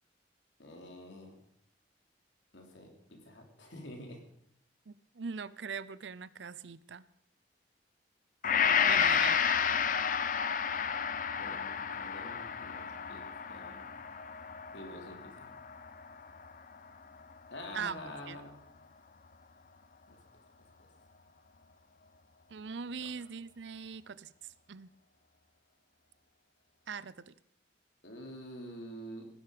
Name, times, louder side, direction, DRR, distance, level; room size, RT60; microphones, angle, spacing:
voice 1, 0.6-1.4 2.5-4.2 8.6-9.1 11.3-13.2 13.5-13.9 14.7-15.6 17.5-18.5 20.1-20.2 28.0-29.2, equal, 75° left, 2 dB, 3.0 m, -47 dB
voice 2, 4.9-7.0 8.9-9.4 17.7-18.0 18.3-18.4 22.5-24.3 24.7-24.9 26.9-27.3, right 6 dB, 75° right, 18 dB, 0.6 m, -41 dB
Gong, 8.4-16.8 17.2-17.3, left 7 dB, 45° left, 0.6 m, -31 dB
17.0 x 10.5 x 5.1 m, 0.73 s
head